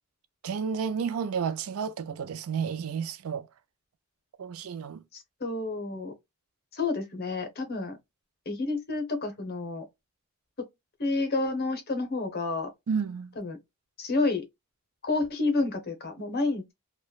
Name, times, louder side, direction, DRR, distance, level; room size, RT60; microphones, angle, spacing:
voice 1, 0.4-3.5 4.4-5.0 12.9-13.3, right 6 dB, 85° right, 0.4 m, -31 dB
voice 2, 5.1-6.1 6.7-8.0 8.5-9.9 10.6-10.7 11.0-12.7 13.4-13.6 14.0-14.4 15.0-16.7, left 3 dB, 50° left, 0.8 m, -29 dB
3.0 x 2.2 x 2.3 m
head